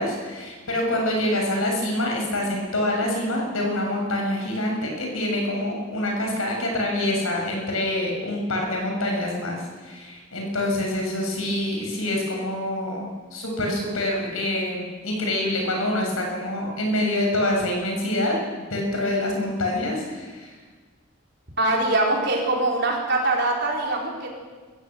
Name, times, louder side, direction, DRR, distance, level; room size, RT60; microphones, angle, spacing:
voice 1, 0.0-20.5, left 1 dB, 90° left, 0 dB, 7.1 m, -26 dB
voice 2, 21.6-24.3, right 2 dB, 50° right, -1 dB, 4.7 m, -23 dB
21.5 x 15.5 x 8.0 m, 1.4 s
head